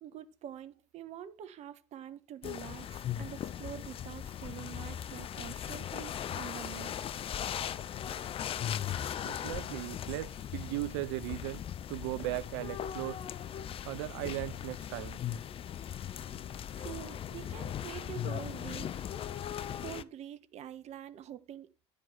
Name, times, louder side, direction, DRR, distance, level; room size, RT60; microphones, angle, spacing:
voice 1, 0.0-7.0 16.8-19.0 19.8-21.9, right 11 dB, 50° right, 1.2 m, -46 dB
sound 1, 2.4-20.0, left 9 dB, 40° left, 0.7 m, -38 dB
voice 2, 9.2-11.6 11.9-13.2 13.9-15.2, right 20 dB, 70° right, 0.4 m, -37 dB
11.0 x 5.3 x 5.7 m
hypercardioid pair, 70°, 15 cm